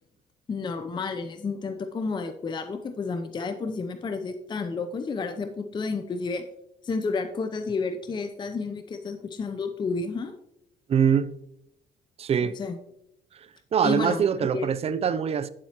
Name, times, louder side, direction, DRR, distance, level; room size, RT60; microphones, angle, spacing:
voice 1, 0.5-6.4 6.8-10.3 12.4-12.8 13.8-14.7, left 4 dB, 25° left, 0.6 m, -31 dB
voice 2, 10.9-11.3 12.2-12.6 13.7-15.5, right 7 dB, 35° right, 0.5 m, -23 dB
9.5 x 7.4 x 2.9 m
cardioid pair, 110°, 17 cm